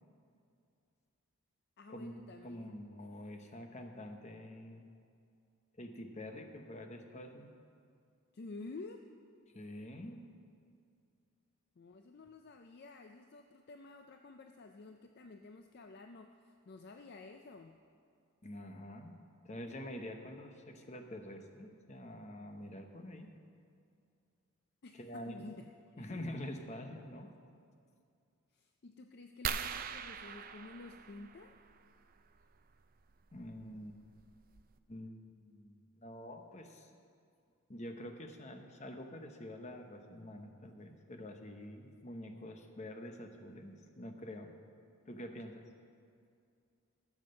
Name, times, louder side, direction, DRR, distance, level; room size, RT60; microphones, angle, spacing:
voice 1, 1.8-2.7 8.3-9.1 11.8-17.8 20.2-20.4 24.8-26.2 28.5-31.6, left 3 dB, 45° left, 6 dB, 0.4 m, -51 dB
voice 2, 2.4-4.9 5.8-7.5 9.5-10.2 18.4-19.2 19.4-23.3 24.9-25.5 26.0-27.3 33.3-34.0 34.9-36.9 37.7-44.5 45.1-45.6, left 1 dB, 30° left, 5 dB, 0.8 m, -46 dB
sound 1, 29.4-31.8 33.4-33.6 34.2-34.3 34.6-34.8, right 7 dB, 40° right, 0.4 m, -41 dB
14.0 x 7.4 x 6.4 m, 2.4 s
head